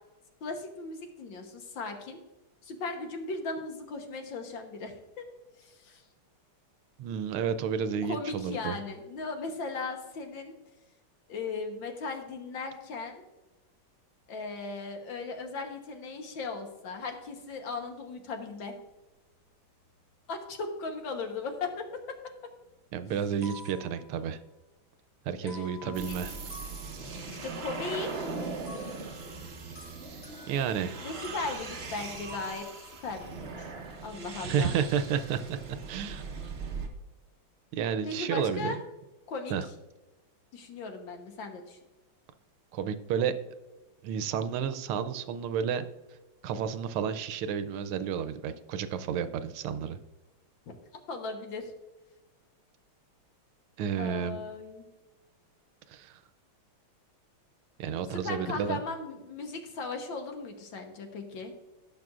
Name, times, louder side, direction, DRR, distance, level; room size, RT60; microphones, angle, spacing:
voice 1, 0.4-2.2 2.6-5.3 5.6-6.0 8.0-10.5 11.3-13.2 14.3-18.8 20.3-22.3 25.4-26.2 27.3-28.3 31.0-33.7 34.0-34.8 38.0-38.8 39.3-39.5 40.5-41.8 51.1-51.7 54.0-54.9 58.1-61.5, left 3 dB, 65° left, 4 dB, 1.8 m, -37 dB
voice 2, 7.0-8.8 22.9-24.4 25.2-26.3 30.5-31.0 34.4-36.2 37.7-38.7 39.5-39.7 42.7-43.3 44.0-45.9 46.4-50.0 53.8-54.4 55.9-56.2 57.8-58.8, right 7 dB, 85° right, 11 dB, 1.5 m, -31 dB
sound 1, 17.6-18.1 18.6-20.0 20.9-22.1 22.4-22.5 23.1-24.7 25.4-27.4 28.7-33.8, left 2 dB, 45° left, 2.8 m, -51 dB
sound 2, 25.9-36.9, right 4 dB, 40° right, 1.0 m, -40 dB
17.5 x 6.0 x 2.5 m, 1.1 s
omnidirectional pair, 2.3 m